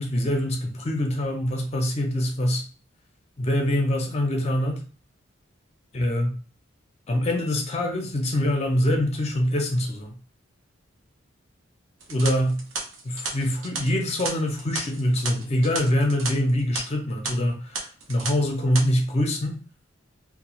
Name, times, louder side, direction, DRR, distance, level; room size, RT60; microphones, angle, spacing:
voice 1, 0.0-2.6 3.4-4.8 5.9-6.3 7.1-10.1 12.1-12.6 13.0-19.6, left 1 dB, 30° left, 3 dB, 0.5 m, -24 dB
sound 1, 12.0-16.3 16.6-16.8 17.2-17.3 17.7-18.3 18.6-18.8, right 4 dB, 75° right, 0.6 m, -33 dB
2.4 x 2.1 x 3.0 m, 0.38 s
head